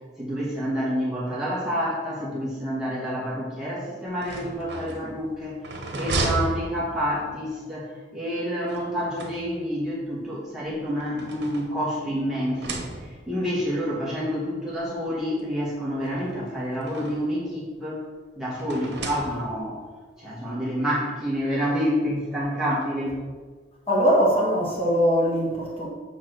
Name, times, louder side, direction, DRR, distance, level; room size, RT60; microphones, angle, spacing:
voice 1, 0.2-5.6 5.9-18.0 18.4-19.8 20.2-23.2, equal, 5° right, -8 dB, 1.6 m, -28 dB
sound 1, 4.1-7.4 8.7-9.9 10.7-12.1 12.4-13.4 14.3-14.4 14.7-14.8 16.0-17.4 18.6-19.8, right 2 dB, 70° right, 1.2 m, -34 dB
voice 2, 23.9-25.9, equal, 30° left, -3 dB, 1.9 m, -21 dB
7.4 x 3.5 x 6.2 m, 1.4 s
head